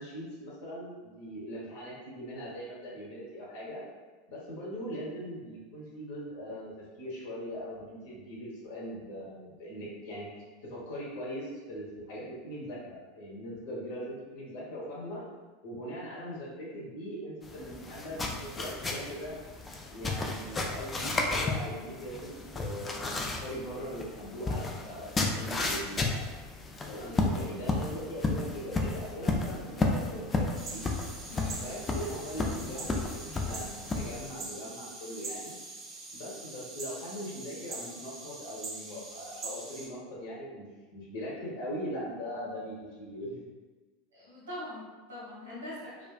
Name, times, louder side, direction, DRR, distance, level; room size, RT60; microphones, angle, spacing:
voice 1, 0.0-3.8 4.3-10.3 10.7-15.2 15.6-19.3 19.9-23.0 23.4-25.0 25.3-26.3 26.9-30.9 31.6-35.5 36.1-43.4, equal, 55° left, -5 dB, 0.8 m, -40 dB
sound 1, 17.4-34.3, left 3 dB, 20° left, 0.3 m, -33 dB
sound 2, 30.5-39.9, right 3 dB, 35° right, 0.5 m, -43 dB
voice 2, 31.3-31.6 44.1-46.1, left 2 dB, 85° right, -8 dB, 0.9 m, -42 dB
2.5 x 2.3 x 2.2 m, 1.3 s
figure-of-eight pair, 80°, 0 cm